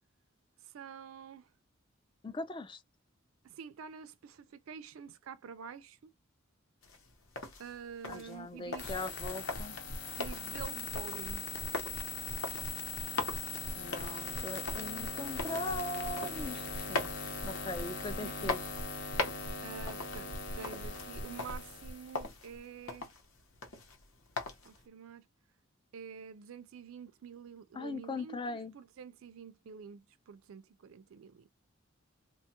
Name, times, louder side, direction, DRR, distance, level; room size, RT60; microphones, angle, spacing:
voice 1, 0.6-1.5 3.4-6.1 7.6-9.0 10.2-11.5 18.2-18.5 19.6-23.1 24.6-25.2 25.9-31.5, right 7 dB, 85° right, 0.4 m, -48 dB
voice 2, 2.2-2.8 8.1-9.8 13.8-17.1 17.4-18.6 27.7-28.8, left 2 dB, 25° left, 0.3 m, -40 dB
sound 1, 6.8-24.9, left 3 dB, 85° left, 1.0 m, -42 dB
sound 2, 8.8-22.6, left 3 dB, 55° left, 0.7 m, -40 dB
2.9 x 2.3 x 2.8 m
head